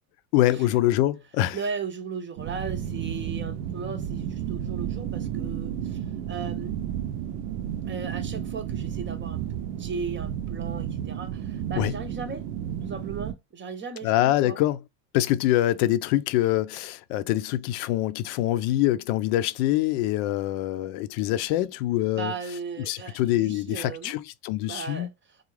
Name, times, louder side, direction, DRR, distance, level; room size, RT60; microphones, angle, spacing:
voice 1, 0.3-1.6 11.8-11.9 14.0-14.8 15.1-22.3 22.9-25.1, left 14 dB, 70° left, 0.6 m, -24 dB
voice 2, 1.5-6.8 7.8-12.5 12.8-14.6 22.1-24.2 24.6-25.5, right 5 dB, 25° right, 0.6 m, -37 dB
sound 1, 2.4-13.3, right 9 dB, 75° right, 0.7 m, -32 dB
3.8 x 2.4 x 3.1 m
supercardioid pair, 100°, 47 cm